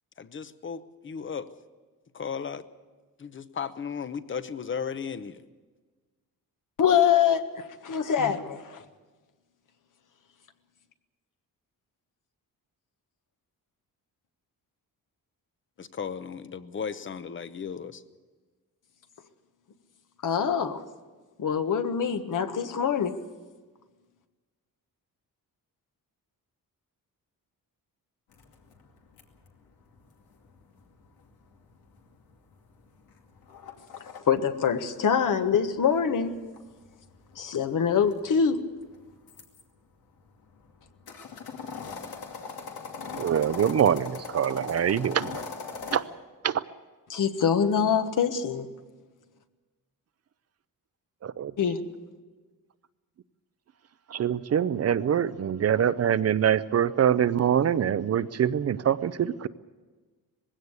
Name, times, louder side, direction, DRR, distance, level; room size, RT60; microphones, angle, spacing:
voice 1, 0.2-1.5 2.1-2.6 3.2-5.3 15.8-18.0, left 6 dB, 35° left, 13 dB, 0.9 m, -35 dB
voice 2, 6.8-8.8 20.2-20.8 21.4-23.1 34.3-36.3 37.4-38.6 47.1-48.7 51.6-51.8, left 7 dB, 60° left, 8 dB, 1.4 m, -24 dB
sound 1, 28.3-34.2 35.4-39.6 40.2-46.0, left 5 dB, 85° left, 2.6 m, -41 dB
voice 3, 43.1-45.4 45.9-46.0 46.4-46.6 51.2-51.5 54.1-59.5, right 9 dB, 45° right, 15 dB, 0.5 m, -24 dB
20.5 x 16.5 x 8.1 m, 1.4 s
wide cardioid pair, 140°, 35 cm